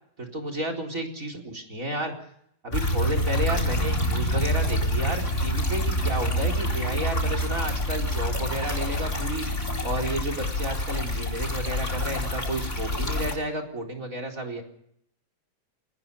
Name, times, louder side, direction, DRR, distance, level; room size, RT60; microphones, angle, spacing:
voice 1, 0.2-2.3 2.6-9.5 9.8-14.6, right 1 dB, 25° right, 7 dB, 4.3 m, -32 dB
sound 1, 2.7-13.3, equal, 20° left, 4.2 m, -27 dB
27.5 x 19.0 x 5.4 m, 0.71 s
omnidirectional pair, 3.8 m